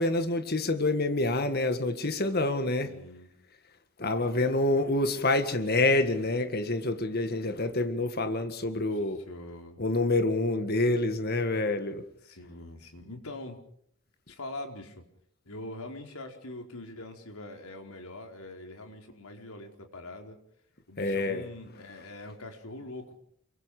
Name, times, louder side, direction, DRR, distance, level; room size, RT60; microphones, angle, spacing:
voice 1, 0.0-2.9 4.0-9.2 9.8-12.0 21.0-21.4, left 2 dB, 45° left, 1.8 m, -27 dB
voice 2, 2.8-3.3 8.9-9.0 9.3-9.8 12.2-13.6 14.3-15.0 15.5-20.4 20.9-23.2, left 2 dB, 80° left, 4.5 m, -43 dB
29.0 x 23.5 x 5.1 m
head